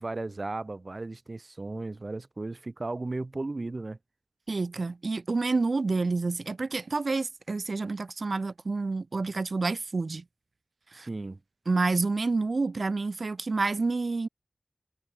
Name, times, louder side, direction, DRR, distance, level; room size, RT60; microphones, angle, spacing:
voice 1, 0.0-4.0 10.9-11.4, right 2 dB, 60° right, 1.7 m, -35 dB
voice 2, 4.5-10.2 10.9-11.1 11.7-14.3, right 3 dB, 85° right, 2.1 m, -28 dB
wide cardioid pair, 55°, 0 cm